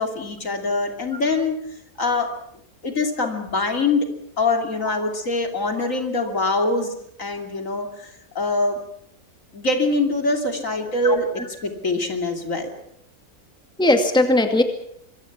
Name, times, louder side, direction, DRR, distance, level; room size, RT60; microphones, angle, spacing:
voice 1, 0.0-1.6 2.0-2.3 2.8-4.1 4.4-6.9 7.2-8.8 9.5-11.3 11.6-12.7, left 2 dB, 60° left, 4 dB, 3.3 m, -23 dB
voice 2, 11.0-11.5 13.8-14.6, left 1 dB, 5° left, 5 dB, 2.1 m, -19 dB
25.5 x 22.5 x 6.0 m, 0.71 s
omnidirectional pair, 1.6 m